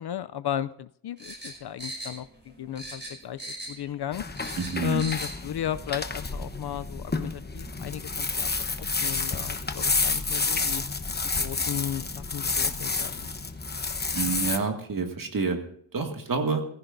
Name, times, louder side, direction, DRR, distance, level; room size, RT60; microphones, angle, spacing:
voice 1, 0.0-4.2 4.8-8.5 8.8-10.8 11.4-13.3, left 10 dB, 55° left, 14 dB, 0.5 m, -34 dB
sound 1, 1.2-2.5 2.8-3.9 4.2-5.4 5.7-5.8, right 1 dB, 20° right, 5.6 m, -38 dB
sound 2, 4.1-14.6, left 4 dB, 20° left, 0.9 m, -30 dB
voice 2, 4.6-5.0 14.1-15.6 15.9-16.7, right 4 dB, 45° right, 4 dB, 2.1 m, -28 dB
18.5 x 15.0 x 2.6 m, 0.64 s
wide cardioid pair, 145°, 48 cm